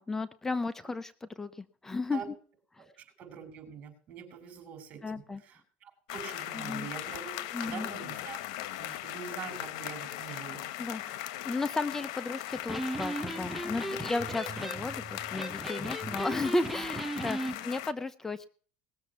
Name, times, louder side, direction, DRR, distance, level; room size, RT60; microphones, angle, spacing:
voice 1, 0.0-2.3 2.7-2.8 5.0-5.4 6.5-6.9 7.5-7.9 10.8-18.5, left 3 dB, 10° left, 14 dB, 0.8 m, -34 dB
voice 2, 3.0-8.4 8.8-10.6 16.7-16.9 17.4-17.6, right 7 dB, 45° right, 7 dB, 6.0 m, -44 dB
sound 1, 6.1-17.9, left 14 dB, 80° left, 1.1 m, -39 dB
Electric guitar, 12.5-17.6, right 1 dB, 5° right, 1.1 m, -37 dB
19.5 x 7.2 x 7.0 m, 0.44 s
supercardioid pair, 130°, 3 cm